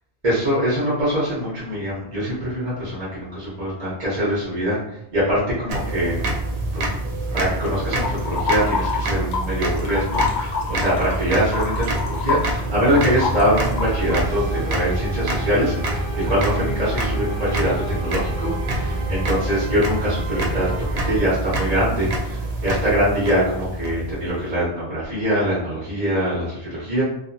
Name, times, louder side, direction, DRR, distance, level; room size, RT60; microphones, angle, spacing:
voice 1, 0.2-6.2 6.7-6.9 7.3-27.0, equal, 40° right, -8 dB, 0.9 m, -23 dB
sound 1, 5.7-24.4, right 2 dB, 85° right, 0.8 m, -27 dB
sound 2, 8.0-9.5 9.8-14.2, left 5 dB, 80° left, 1.0 m, -26 dB
sound 3, 12.6-21.2, right 1 dB, 45° left, 0.9 m, -30 dB
2.6 x 2.4 x 2.6 m, 0.80 s
omnidirectional pair, 1.1 m